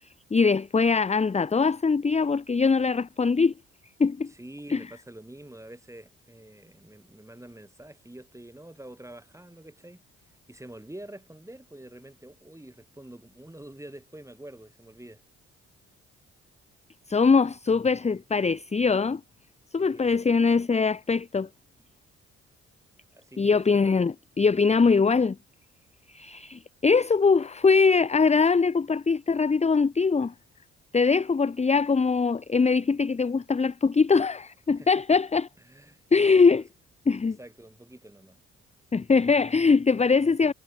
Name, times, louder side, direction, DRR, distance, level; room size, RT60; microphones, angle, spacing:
voice 1, 0.3-3.5 4.0-4.3 4.7-4.8 17.1-19.2 19.7-21.5 23.4-25.4 26.1-30.3 30.9-35.5 36.1-36.6 37.1-37.4 38.9-40.5, left 4 dB, 20° left, 0.8 m, -22 dB
voice 2, 4.3-15.2 19.8-20.2 23.1-23.8 34.7-35.0 35.6-36.6 37.2-38.4, right 1 dB, 10° right, 7.7 m, -47 dB
hypercardioid pair, 50°, 32 cm